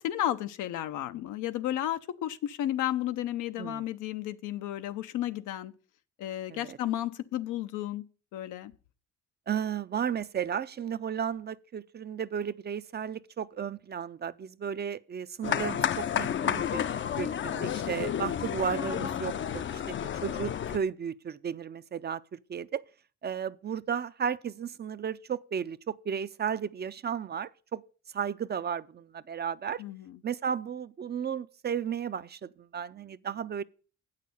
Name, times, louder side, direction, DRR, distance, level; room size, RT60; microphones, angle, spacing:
voice 1, 0.0-5.7 6.2-8.0 8.3-8.7 29.8-30.2, left 12 dB, 90° left, 0.7 m, -33 dB
voice 2, 9.5-16.8 17.2-22.8 23.2-27.8 28.1-29.8 30.2-33.6, right 7 dB, 35° right, 0.5 m, -34 dB
sound 1, 15.4-20.8, left 9 dB, 40° left, 0.5 m, -31 dB
8.4 x 6.6 x 6.8 m
cardioid pair, 90°, 30 cm